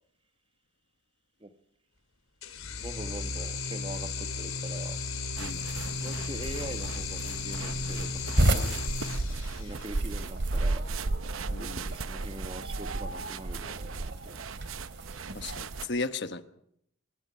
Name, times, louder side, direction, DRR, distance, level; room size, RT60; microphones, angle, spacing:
sound 1, 2.4-10.0, left 4 dB, 85° left, 4.0 m, -35 dB
voice 1, 2.8-5.0 6.0-8.6 9.6-10.8 11.6-14.5, right 1 dB, 25° right, 1.2 m, -43 dB
sound 2, 5.4-15.9, right 3 dB, 70° right, 0.8 m, -35 dB
sound 3, 8.4-15.9, right 1 dB, 55° right, 2.6 m, -33 dB
voice 2, 11.5-11.8 15.3-16.4, left 3 dB, 55° left, 1.2 m, -35 dB
25.0 x 22.5 x 5.6 m
head